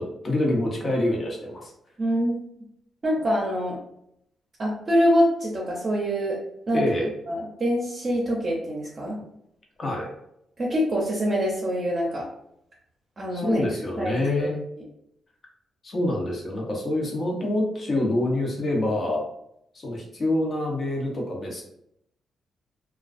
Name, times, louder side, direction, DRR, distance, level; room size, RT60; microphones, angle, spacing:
voice 1, 0.0-1.7 6.7-7.1 9.8-10.1 13.3-14.6 15.8-19.2 19.8-21.6, left 1 dB, 45° left, -1 dB, 0.8 m, -26 dB
voice 2, 2.0-2.5 3.0-3.8 4.6-6.4 6.7-6.8 7.3-9.2 10.6-12.2 13.2-13.6 14.0-14.5, equal, 40° right, -4 dB, 0.6 m, -25 dB
2.3 x 2.2 x 2.4 m, 0.76 s
cardioid pair, 80°, 0 cm